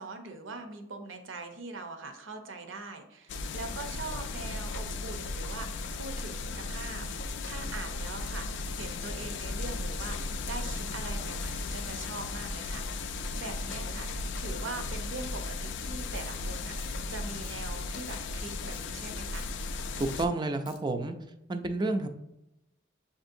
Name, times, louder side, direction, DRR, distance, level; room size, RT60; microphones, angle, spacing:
voice 1, 0.0-14.1 14.4-19.5, right 3 dB, 70° right, 6 dB, 0.6 m, -42 dB
sound 1, 3.3-20.3, left 3 dB, 65° left, 0.3 m, -36 dB
sound 2, 16.1-16.4 16.8-17.0 17.4-17.8 18.1-18.2 18.5-18.9 19.3-19.5 20.0-20.1 20.4-20.8, left 3 dB, 20° left, 0.6 m, -52 dB
voice 2, 20.0-21.2 21.5-22.1, right 2 dB, 20° right, 7 dB, 0.3 m, -30 dB
7.1 x 2.7 x 2.6 m, 0.88 s
head